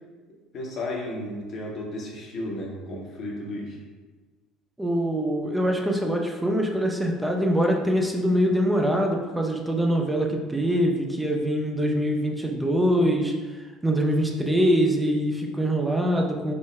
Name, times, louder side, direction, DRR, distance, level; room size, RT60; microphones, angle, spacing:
voice 1, 0.5-3.8, left 1 dB, 45° left, -1 dB, 0.8 m, -33 dB
voice 2, 4.8-13.3 13.8-16.5, equal, 10° right, 1 dB, 0.6 m, -23 dB
5.1 x 2.1 x 3.2 m, 1.3 s
figure-of-eight pair, 60°, 0 cm